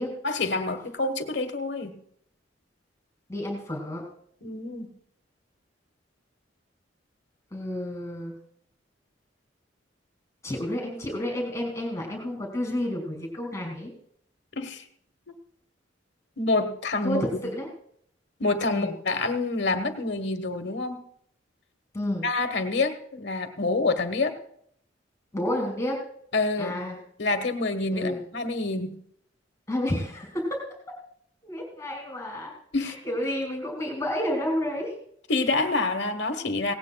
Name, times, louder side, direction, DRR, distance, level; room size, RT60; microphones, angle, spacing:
voice 1, 0.2-2.0 4.4-4.9 14.6-14.8 16.4-17.3 18.4-21.0 22.2-24.4 26.3-26.8 27.2-28.9 32.7-33.0 35.3-36.7, left 3 dB, 65° left, 9 dB, 1.2 m, -27 dB
voice 2, 3.3-4.0 7.5-8.4 10.4-13.9 17.0-17.7 18.7-18.9 21.9-22.2 25.3-26.0 26.6-27.0 27.9-28.2 29.7-30.7 31.4-32.5 32.8-35.0, left 1 dB, 15° left, 1 dB, 2.3 m, -30 dB
17.5 x 17.0 x 2.3 m, 0.67 s
head